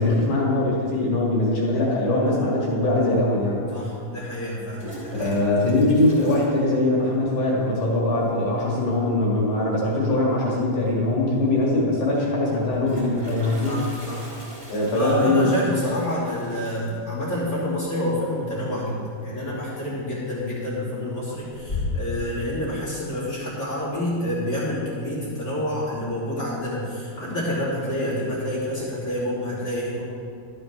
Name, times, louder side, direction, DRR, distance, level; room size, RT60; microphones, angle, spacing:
voice 1, 0.0-3.6 5.1-13.8 14.7-15.8, left 2 dB, 50° left, -4 dB, 2.6 m, -22 dB
Toilet flush, 3.1-3.2 4.4-7.3 7.5-7.6 7.9-8.0 8.3-8.7 10.4-10.5 10.8-10.9 12.5-19.2 19.5-19.9 20.3-20.9 21.3-22.3, left 2 dB, 10° left, 1.8 m, -37 dB
voice 2, 3.7-5.3 13.6-14.3 14.9-30.0, left 1 dB, 35° left, -8 dB, 1.4 m, -28 dB
12.5 x 11.5 x 3.3 m, 2.4 s
omnidirectional pair, 5.8 m